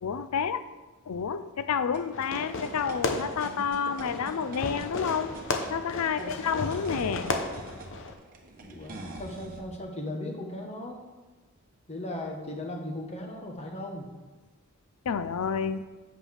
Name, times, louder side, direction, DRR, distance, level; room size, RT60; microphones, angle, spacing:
voice 1, 0.0-0.6 1.1-5.3 5.7-7.3 15.1-15.9, left 6 dB, 85° left, 13 dB, 0.5 m, -29 dB
sound 1, 1.9-9.6, right 2 dB, 40° right, 1.1 m, -45 dB
Fireworks, 2.1-8.1, left 3 dB, 60° left, 0.8 m, -35 dB
voice 2, 8.6-11.0 11.9-14.1, left 1 dB, 30° left, 1 dB, 1.3 m, -37 dB
8.2 x 5.4 x 5.8 m, 1.2 s
head